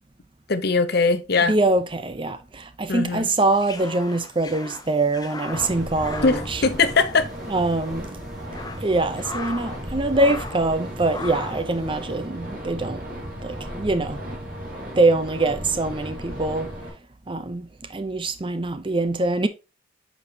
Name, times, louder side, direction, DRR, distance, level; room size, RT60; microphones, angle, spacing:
voice 1, 0.5-1.6 2.9-3.3 6.2-7.3, left 4 dB, 55° left, 0.7 m, -21 dB
voice 2, 1.5-6.6 7.5-8.1 8.8-13.0 13.4-14.2 15.0-16.7 17.3-17.7 17.9-19.5, right 2 dB, 25° right, 0.7 m, -23 dB
sound 1, 3.3-7.4 7.6-7.8 8.3-9.8 10.1-10.7 11.1-11.7, left 3 dB, 20° left, 0.7 m, -37 dB
sound 2, 5.5-16.9, equal, 45° right, 2.3 m, -35 dB
8.4 x 5.3 x 2.8 m
head